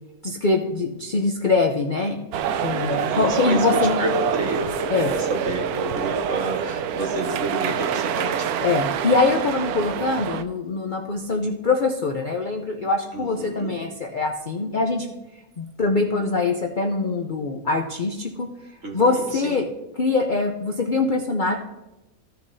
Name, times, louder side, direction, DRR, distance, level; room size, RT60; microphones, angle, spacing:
voice 1, 0.2-2.2 2.6-4.0 4.9-5.1 8.6-15.1 15.6-18.5 18.9-19.7 20.0-21.6, left 3 dB, 50° left, 3 dB, 0.6 m, -23 dB
sound 1, 2.3-10.4, right 8 dB, 85° right, 1.1 m, -26 dB
voice 2, 2.8-8.6 13.1-13.7 18.8-19.6, right 1 dB, 55° right, 0 dB, 1.9 m, -29 dB
15.0 x 6.8 x 2.7 m, 1.0 s
omnidirectional pair, 1.5 m